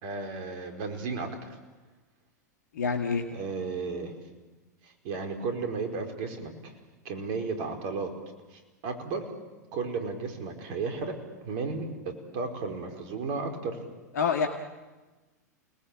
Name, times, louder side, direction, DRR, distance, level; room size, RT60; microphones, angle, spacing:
voice 1, 0.0-1.6 3.3-4.1 4.8-6.7 7.0-8.1 8.5-9.2 9.7-11.2 11.4-13.8, right 4 dB, 50° right, 5 dB, 4.9 m, -34 dB
voice 2, 2.7-3.3 14.1-14.5, left 5 dB, 70° left, 4 dB, 2.0 m, -26 dB
29.5 x 20.0 x 8.7 m, 1.2 s
figure-of-eight pair, 95°, 9 cm